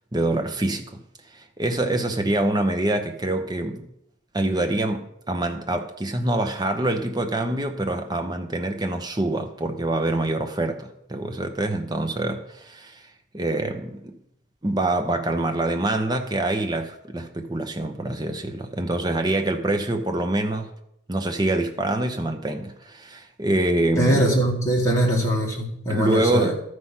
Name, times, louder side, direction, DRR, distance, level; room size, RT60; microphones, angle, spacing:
voice 1, 0.1-1.0 1.3-3.9 4.3-13.0 13.3-14.2 14.6-20.7 21.1-24.2 25.9-26.5, right 1 dB, 20° right, 0.8 m, -25 dB
voice 2, 24.0-26.5, right 1 dB, 15° left, 2.1 m, -22 dB
13.0 x 4.8 x 5.7 m
head